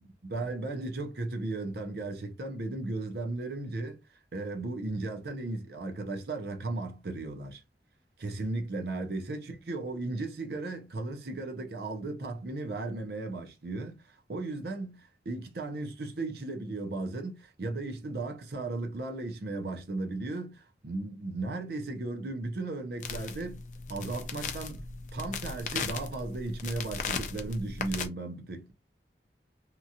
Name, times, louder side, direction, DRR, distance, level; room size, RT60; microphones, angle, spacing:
voice 1, 0.2-4.0 4.3-7.6 8.2-23.6 23.9-24.9 25.1-28.7, right 2 dB, 65° right, 0.6 m, -36 dB
sound 1, 23.0-28.1, left 5 dB, 45° left, 0.4 m, -37 dB
2.9 x 2.4 x 2.7 m
head